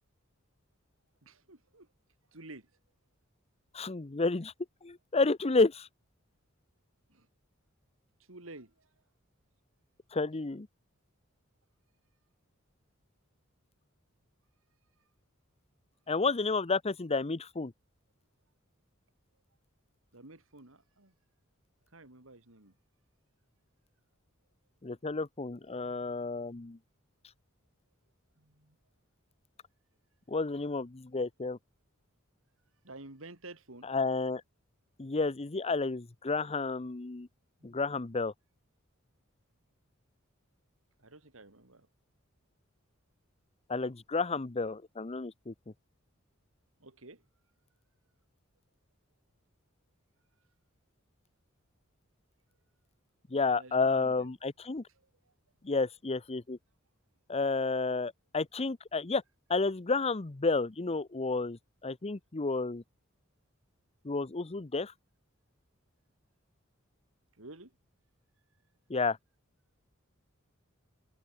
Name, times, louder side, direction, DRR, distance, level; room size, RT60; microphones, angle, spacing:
voice 1, 1.2-1.9 2.3-2.7 7.1-7.3 8.3-8.9 20.1-21.1 21.9-22.7 25.7-26.1 28.4-28.8 32.8-33.9 37.6-38.0 41.0-41.9 46.8-47.2 53.5-54.3 55.0-55.3 67.3-67.7, right 2 dB, 75° right, 3.5 m, -51 dB
voice 2, 3.7-4.5 4.8-5.9 10.1-10.7 16.1-17.7 24.8-26.8 30.3-31.6 33.9-34.4 35.0-37.3 37.6-38.3 43.7-45.5 53.3-54.8 55.6-56.6 57.3-59.2 59.5-62.8 64.0-64.9 68.9-69.2, left 3 dB, 30° left, 0.8 m, -31 dB
head